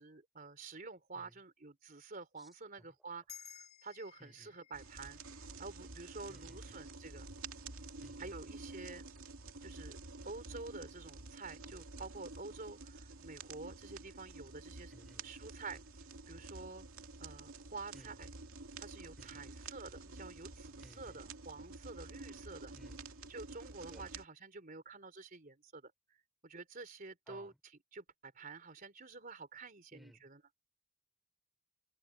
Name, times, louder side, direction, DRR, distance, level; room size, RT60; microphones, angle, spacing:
voice 1, 0.0-5.2 5.6-7.3 8.2-9.1 9.6-10.0 10.2-14.9 15.2-15.8 16.3-16.9 17.2-18.3 18.8-22.7 23.3-25.9 26.4-27.5 27.9-30.4, right 3 dB, 40° right, 3.8 m, -49 dB
sound 1, 3.3-8.0, left 9 dB, 30° left, 2.8 m, -58 dB
voice 2, 4.2-4.5 6.3-6.9 8.0-8.4 14.9-15.3 17.9-18.2 19.2-19.5 20.8-21.2 22.7-23.3 23.9-24.0 27.3-27.6 29.9-30.3, equal, ahead, 6.1 m, -60 dB
sound 2, 4.7-24.2, right 3 dB, 80° right, 2.4 m, -50 dB
head